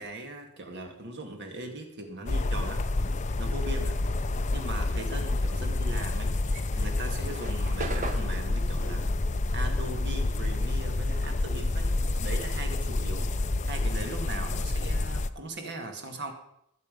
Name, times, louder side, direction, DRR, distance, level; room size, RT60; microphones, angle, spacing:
voice 1, 0.0-2.9 3.4-4.0 4.5-6.4 6.7-9.2 9.5-16.3, right 1 dB, 55° right, 4 dB, 2.2 m, -39 dB
sound 1, 2.3-15.3, left 2 dB, 35° left, 0.6 m, -28 dB
sound 2, 6.4-11.1 11.4-13.4, right 3 dB, 40° right, 1.5 m, -41 dB
20.5 x 7.4 x 5.4 m, 0.76 s
head